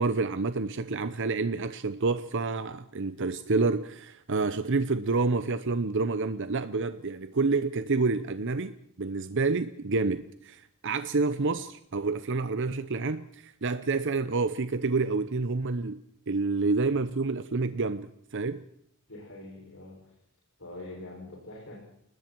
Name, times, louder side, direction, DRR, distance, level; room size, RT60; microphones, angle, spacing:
voice 1, 0.0-16.0 16.3-18.6, right 3 dB, 60° right, 0.8 m, -28 dB
voice 2, 19.1-20.1 20.6-21.8, left 2 dB, 65° left, 6.9 m, -44 dB
30.0 x 20.0 x 4.7 m
head